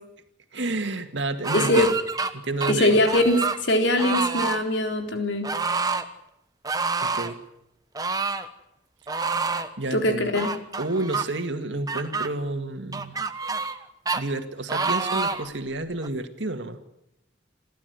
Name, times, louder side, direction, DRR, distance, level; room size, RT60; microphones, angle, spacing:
voice 1, 0.5-2.0 2.3-3.0 7.0-7.4 9.8-10.3 10.8-13.2 14.1-16.8, right 2 dB, 85° right, 7 dB, 2.1 m, -30 dB
sound 1, 1.4-2.3 2.6-3.6 4.0-4.6 5.4-6.0 6.6-7.3 7.9-8.5 9.1-9.7 10.3-11.3 11.9-12.3 12.9-13.8 14.1-14.2 14.7-15.5 16.0-16.1, right 4 dB, 20° right, 1.1 m, -27 dB
voice 2, 1.5-1.9 2.7-5.5 9.9-10.5, left 1 dB, 85° left, 4 dB, 4.0 m, -22 dB
28.0 x 12.5 x 9.5 m, 0.83 s
head